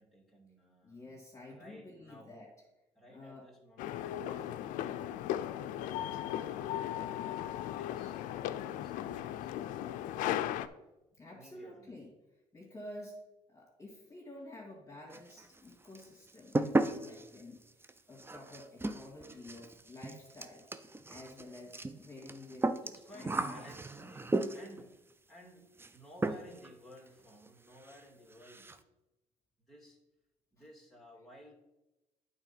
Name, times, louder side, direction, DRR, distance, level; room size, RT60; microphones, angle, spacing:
voice 1, 0.0-1.2 1.5-2.4 3.0-5.2 5.6-8.2 8.6-10.5 11.3-12.0 16.8-17.1 22.8-25.0 25.3-28.8 29.6-30.0 30.5-31.5, equal, ahead, -3 dB, 2.3 m, -56 dB
voice 2, 0.8-2.5 3.1-3.5 11.1-12.1 12.5-13.2 13.5-17.6 18.1-22.7 23.1-23.7, left 1 dB, 25° left, -4 dB, 2.2 m, -50 dB
sound 1, 3.8-10.7, left 12 dB, 80° left, 0.4 m, -37 dB
sound 2, 15.1-15.7 15.9-24.8 25.8-26.0 26.2-26.7 27.0-27.1 27.5-27.6 27.8-28.0 28.3-28.8, right 2 dB, 15° right, 0.6 m, -35 dB
8.8 x 4.0 x 5.6 m, 0.97 s
supercardioid pair, 75°, 13 cm